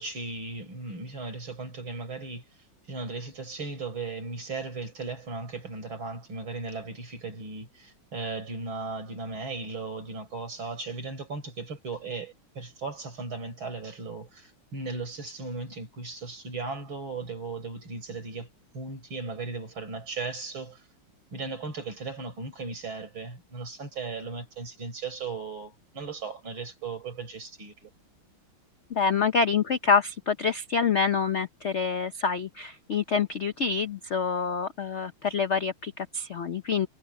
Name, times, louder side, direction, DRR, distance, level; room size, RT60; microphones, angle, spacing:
voice 1, 0.0-2.4 2.9-18.5 18.7-20.8 21.3-27.9, right 3 dB, 70° right, 5.6 m, -37 dB
voice 2, 28.9-36.9, left 5 dB, 70° left, 0.6 m, -26 dB
omnidirectional pair, 2.3 m